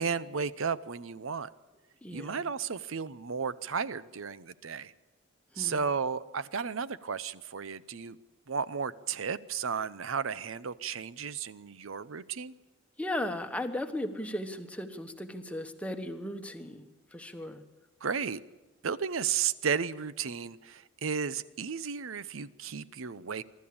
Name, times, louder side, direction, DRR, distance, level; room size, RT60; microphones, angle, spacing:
voice 1, 0.0-1.5 2.1-4.9 5.6-8.2 8.5-12.5 18.0-18.4 18.8-23.4, right 6 dB, 80° right, 17 dB, 0.7 m, -33 dB
voice 2, 2.0-2.5 5.5-5.8 13.0-17.6, left 1 dB, 5° left, 6 dB, 1.2 m, -36 dB
24.0 x 13.0 x 8.7 m, 1.2 s
head